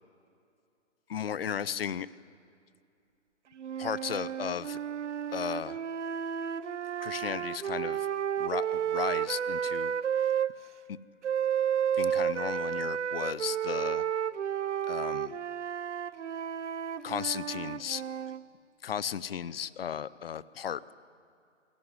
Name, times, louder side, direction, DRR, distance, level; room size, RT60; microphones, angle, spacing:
voice 1, 1.1-2.1 3.8-4.8 5.3-5.8 7.0-8.1 8.4-9.9 10.9-11.0 11.9-14.0 14.9-15.3 17.0-18.0 18.8-20.9, left 8 dB, 50° left, 19 dB, 0.7 m, -35 dB
sound 1, 3.6-10.5 11.2-18.4, right 8 dB, 70° right, 0.8 m, -32 dB
27.5 x 11.5 x 9.6 m, 2.5 s
hypercardioid pair, 155°, 37 cm